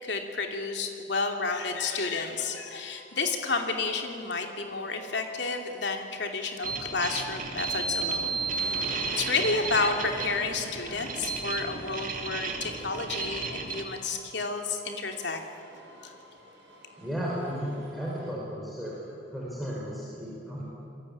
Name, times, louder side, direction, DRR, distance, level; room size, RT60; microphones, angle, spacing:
voice 1, 0.0-8.5 8.8-15.4 16.0-16.1, left 3 dB, 70° left, 4 dB, 2.9 m, -31 dB
sound 1, 2.3-18.3, equal, 65° right, 6.7 m, -50 dB
sound 2, 6.6-13.8, right 4 dB, 45° right, 2.8 m, -33 dB
voice 2, 17.0-19.0 19.3-20.6, equal, ahead, -6 dB, 4.7 m, -34 dB
27.5 x 22.0 x 8.7 m, 2.7 s
head